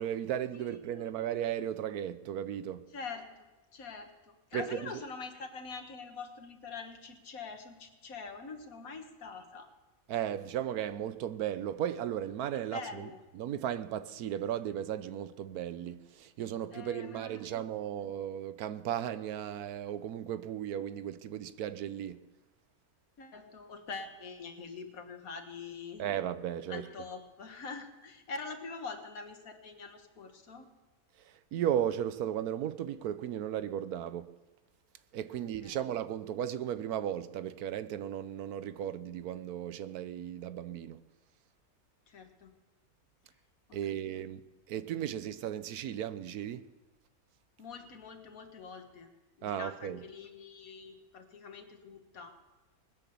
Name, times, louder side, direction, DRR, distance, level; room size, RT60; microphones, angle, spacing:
voice 1, 0.0-2.9 4.5-4.9 10.1-13.1 13.3-22.2 26.0-26.9 31.2-34.3 35.1-41.0 43.7-44.4 44.7-46.7 49.4-50.0, right 10 dB, 80° right, 1.2 m, -35 dB
voice 2, 0.6-1.1 2.9-3.5 3.7-9.7 12.7-13.2 16.7-17.6 23.2-26.0 26.7-30.7 35.3-35.9 42.1-42.5 43.7-43.8 47.6-49.1 49.4-52.4, left 4 dB, 70° left, 1.9 m, -44 dB
20.0 x 10.0 x 7.0 m
omnidirectional pair, 1.6 m